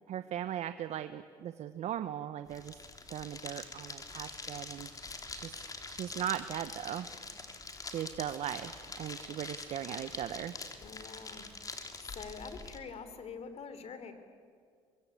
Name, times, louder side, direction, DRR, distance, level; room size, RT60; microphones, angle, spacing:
voice 1, 0.1-2.8 3.1-4.9 5.3-5.6 5.9-7.1 7.9-10.5, right 11 dB, 60° right, 11 dB, 0.9 m, -38 dB
sound 1, 2.5-12.8, left 3 dB, 30° left, 3.4 m, -45 dB
voice 2, 10.8-11.5 12.0-14.1, left 5 dB, 55° left, 10 dB, 3.3 m, -45 dB
25.5 x 21.0 x 8.7 m, 2.2 s
supercardioid pair, 70°, 13 cm